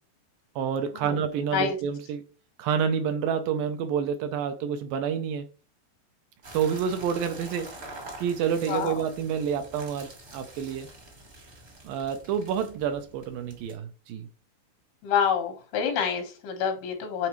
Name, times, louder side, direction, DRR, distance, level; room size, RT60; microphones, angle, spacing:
voice 1, 0.6-2.2 2.6-5.5 6.5-7.8 8.2-10.9 11.8-14.3, right 7 dB, 75° right, 2.2 m, -28 dB
sound 1, 6.4-13.7, right 2 dB, 40° right, 1.0 m, -46 dB
voice 2, 15.0-17.3, left 7 dB, 90° left, 3.4 m, -27 dB
9.4 x 3.9 x 3.0 m
omnidirectional pair, 4.3 m